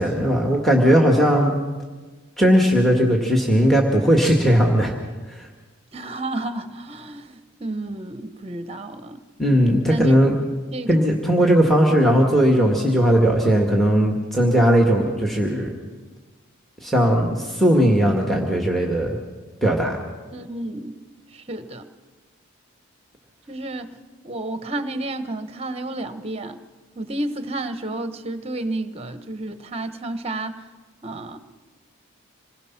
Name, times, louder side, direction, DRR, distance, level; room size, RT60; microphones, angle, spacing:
voice 1, 0.0-1.5 2.4-4.9 9.4-10.3 10.9-15.7 16.8-19.2 19.6-20.0, equal, ahead, 0 dB, 1.8 m, -18 dB
voice 2, 5.9-9.2 9.9-10.2 10.7-10.9 20.3-21.0 21.3-21.9 23.5-23.9 24.2-26.6 27.0-30.6 31.0-31.4, right 2 dB, 30° right, 10 dB, 1.1 m, -31 dB
26.5 x 20.5 x 6.0 m, 1.4 s
head